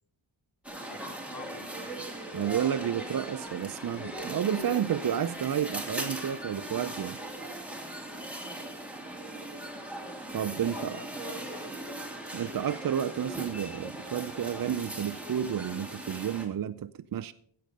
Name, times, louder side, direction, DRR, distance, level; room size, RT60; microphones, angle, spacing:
sound 1, 0.6-16.5, right 1 dB, 5° right, 2.5 m, -39 dB
voice 1, 0.9-2.0 10.7-11.8, left 4 dB, 45° left, 1.4 m, -47 dB
Truck, 1.8-6.6, left 2 dB, 80° left, 4.3 m, -59 dB
voice 2, 2.3-7.2 10.3-11.0 12.3-17.3, right 9 dB, 45° right, 0.5 m, -31 dB
15.5 x 6.6 x 5.3 m
wide cardioid pair, 65°, 48 cm